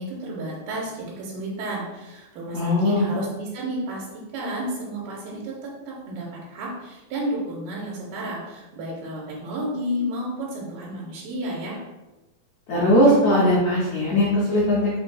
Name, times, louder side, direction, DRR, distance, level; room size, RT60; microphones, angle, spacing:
voice 1, 0.0-4.0 4.3-11.8, right 1 dB, 90° right, -3 dB, 2.5 m, -31 dB
voice 2, 2.5-3.0 12.7-15.0, left 1 dB, 85° left, -6 dB, 1.6 m, -19 dB
5.7 x 2.6 x 2.3 m, 1.1 s
omnidirectional pair, 4.2 m